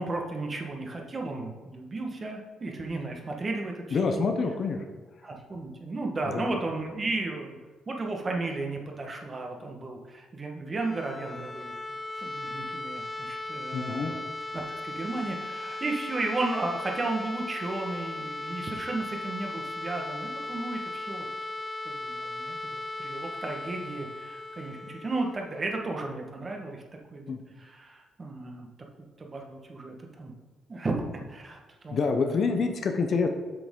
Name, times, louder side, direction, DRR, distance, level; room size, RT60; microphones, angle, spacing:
voice 1, 0.0-4.2 5.2-7.6 7.9-11.7 12.2-14.2 14.5-21.3 21.8-26.8 27.1-28.7 29.2-30.3 30.7-32.6, right 2 dB, 35° right, 2 dB, 1.3 m, -34 dB
voice 2, 3.9-4.8 6.3-6.5 13.7-14.1 27.3-27.4 31.9-33.3, left 4 dB, 55° left, 5 dB, 0.8 m, -27 dB
sound 1, 10.6-26.4, left 2 dB, 20° left, 0.3 m, -37 dB
7.8 x 6.1 x 3.7 m, 1.3 s
cardioid pair, 90°, 0 cm